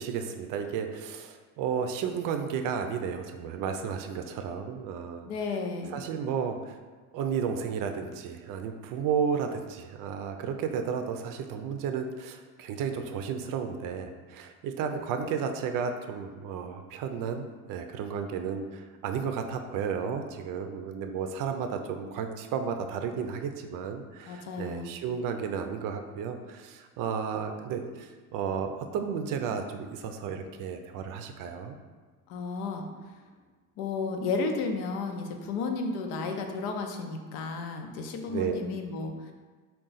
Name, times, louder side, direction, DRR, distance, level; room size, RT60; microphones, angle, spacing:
voice 1, 0.0-5.3 5.9-6.7 7.1-31.8 38.3-38.6, right 6 dB, 60° right, 6 dB, 0.5 m, -33 dB
voice 2, 5.2-6.0 24.3-24.9 32.3-32.9 33.8-39.3, left 4 dB, 90° left, 4 dB, 0.6 m, -33 dB
3.7 x 2.3 x 3.9 m, 1.4 s
cardioid pair, 125°, 37 cm